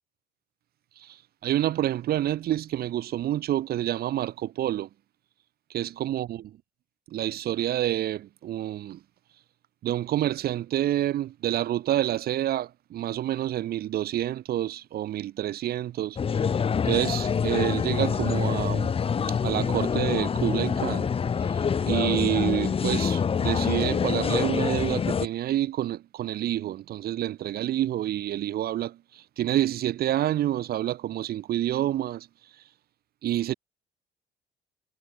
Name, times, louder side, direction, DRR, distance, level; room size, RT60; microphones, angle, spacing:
voice 1, 1.0-4.9 5.7-6.4 7.1-9.0 9.8-16.2 16.8-18.9 19.3-21.1 21.4-32.3 33.2-33.5, right 12 dB, 65° right, 4.8 m, -28 dB
sound 1, 16.2-25.3, left 6 dB, 35° left, 1.5 m, -26 dB
cardioid pair, 110°, 17 cm